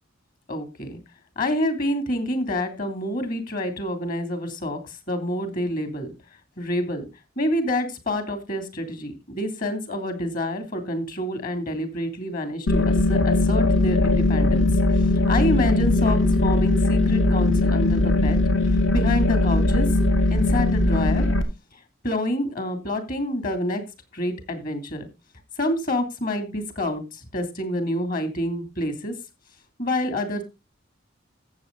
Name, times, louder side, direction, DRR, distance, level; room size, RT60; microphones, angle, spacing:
voice 1, 0.5-1.0 1.4-6.1 6.6-7.1 7.4-14.7 15.3-18.4 18.7-19.9 20.3-21.3 22.0-23.8 24.1-25.1 25.6-29.1 29.8-30.4, left 1 dB, 45° left, 8 dB, 3.1 m, -27 dB
sound 1, 12.7-21.4, left 2 dB, 70° left, 2.3 m, -20 dB
14.5 x 7.7 x 4.0 m, 0.27 s
head